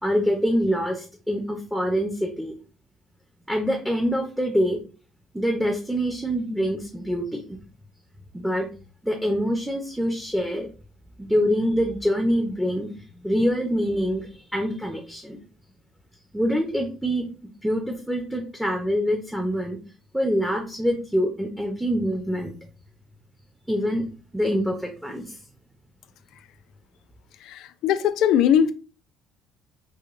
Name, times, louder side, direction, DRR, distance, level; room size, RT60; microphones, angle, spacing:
voice 1, 0.0-2.5 3.5-4.8 5.3-7.6 8.3-8.7 9.0-10.7 11.2-12.9 13.2-15.4 16.3-17.3 17.6-19.8 20.1-22.5 23.7-24.0 24.3-25.4, equal, 5° right, 0.6 m, -25 dB
voice 2, 27.5-28.7, left 9 dB, 75° left, 0.3 m, -20 dB
4.8 x 2.1 x 2.5 m
cardioid pair, 155°, 0 cm